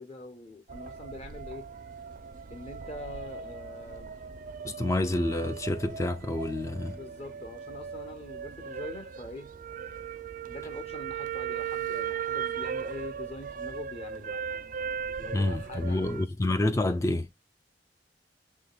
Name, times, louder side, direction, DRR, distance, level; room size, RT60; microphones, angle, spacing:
voice 1, 0.0-1.7 2.5-4.2 6.6-9.5 10.4-14.5 15.2-16.2, left 2 dB, 35° left, 0.9 m, -44 dB
sound 1, 0.7-16.3, right 7 dB, 50° right, 0.4 m, -38 dB
voice 2, 4.6-7.0 15.3-17.3, left 2 dB, 15° left, 0.3 m, -28 dB
6.2 x 3.3 x 2.2 m
head